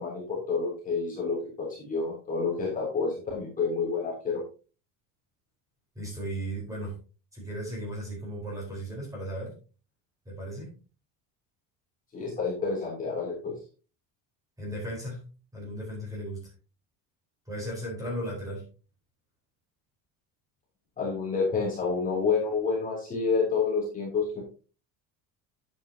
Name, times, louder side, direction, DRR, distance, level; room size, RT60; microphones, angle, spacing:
voice 1, 0.0-4.4 12.1-13.5 21.0-24.4, left 4 dB, 20° left, -4 dB, 3.3 m, -29 dB
voice 2, 5.9-6.9 7.3-9.5 10.2-10.7 14.6-15.2 15.5-16.5 17.5-18.6, right 1 dB, 10° right, -3 dB, 4.4 m, -36 dB
9.4 x 9.0 x 2.9 m, 0.34 s
cardioid pair, 180°, 38 cm